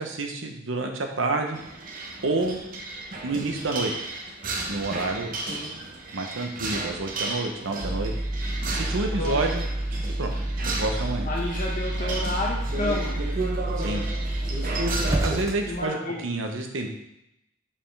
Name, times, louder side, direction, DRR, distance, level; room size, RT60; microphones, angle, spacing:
voice 1, 0.0-1.6 2.2-2.6 3.2-3.9 4.7-5.3 6.1-8.1 8.7-9.6 10.2-10.3 10.8-11.3 12.0-12.2 13.8-14.0 15.2-16.0 16.2-16.9, right 3 dB, 70° right, 4 dB, 0.9 m, -28 dB
sound 1, 1.5-15.4, right 2 dB, 40° right, 0.8 m, -34 dB
sound 2, 7.8-15.9, right 1 dB, 15° right, 0.4 m, -29 dB
voice 2, 11.3-13.2 15.7-16.2, left 2 dB, 40° left, -2 dB, 0.7 m, -30 dB
5.6 x 5.0 x 3.4 m, 0.83 s
head